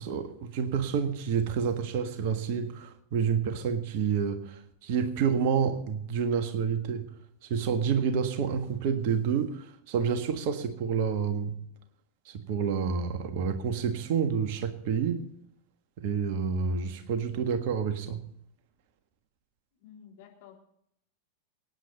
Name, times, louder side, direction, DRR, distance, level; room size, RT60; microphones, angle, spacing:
voice 1, 0.0-11.6 12.2-15.3 16.0-18.2, right 6 dB, 50° right, 1.6 m, -29 dB
voice 2, 19.8-20.6, left 8 dB, 50° left, 3.5 m, -51 dB
23.5 x 9.9 x 4.0 m
figure-of-eight pair, 90°, 0 cm